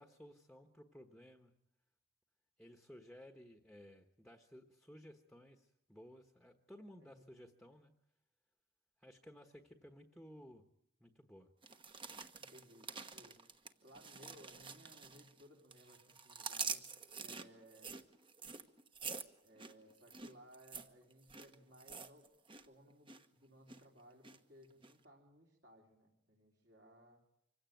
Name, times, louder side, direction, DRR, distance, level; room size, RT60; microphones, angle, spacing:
voice 1, 0.0-1.5 2.6-7.9 9.0-10.7 11.0-11.5, equal, ahead, 5 dB, 1.3 m, -57 dB
sound 1, 11.6-15.4 15.7-22.7 22.9-23.3 23.7-24.4 24.8-24.9, right 5 dB, 25° right, 1.2 m, -47 dB
voice 2, 12.3-13.4 13.8-16.8 17.1-17.9 19.4-22.3 22.7-27.2, equal, 55° right, -1 dB, 3.7 m, -61 dB
25.5 x 16.5 x 9.1 m, 0.78 s
head